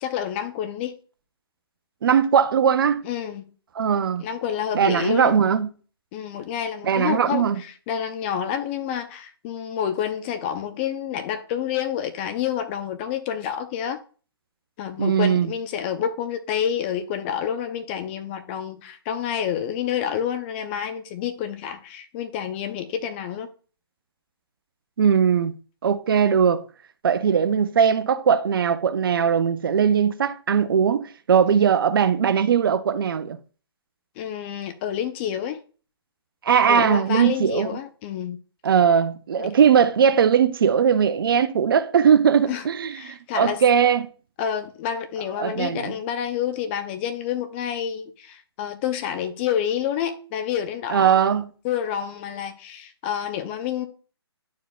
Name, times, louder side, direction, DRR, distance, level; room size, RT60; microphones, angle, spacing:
voice 1, 0.0-0.9 3.0-3.5 4.2-5.4 6.1-14.0 14.8-23.5 31.5-31.6 34.2-35.6 36.7-38.4 39.4-39.5 42.5-42.6 42.9-43.6 44.4-53.9, left 9 dB, 25° left, 0.7 m, -28 dB
voice 2, 2.0-3.0 3.8-4.2 4.7-5.7 6.8-7.6 15.0-15.5 25.0-25.6 25.8-26.6 27.0-33.4 36.4-37.7 38.6-44.1 45.4-46.0 50.9-51.5, right 7 dB, 55° right, 0.6 m, -19 dB
11.5 x 4.6 x 2.3 m
figure-of-eight pair, 140°, 14 cm